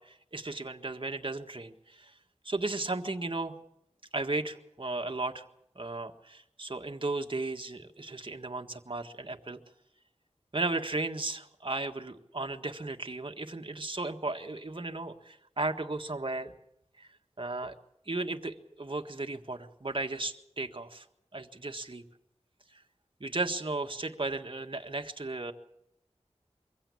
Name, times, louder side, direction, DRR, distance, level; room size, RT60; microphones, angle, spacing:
voice 1, 0.0-2.1 2.4-3.5 4.1-5.5 5.7-9.6 10.5-16.6 17.0-17.1 17.4-17.7 18.1-21.0 21.3-22.0 23.2-25.5, right 2 dB, 45° right, 5 dB, 1.7 m, -35 dB
24.0 x 16.0 x 8.5 m, 0.80 s
wide cardioid pair, 55°, 12 cm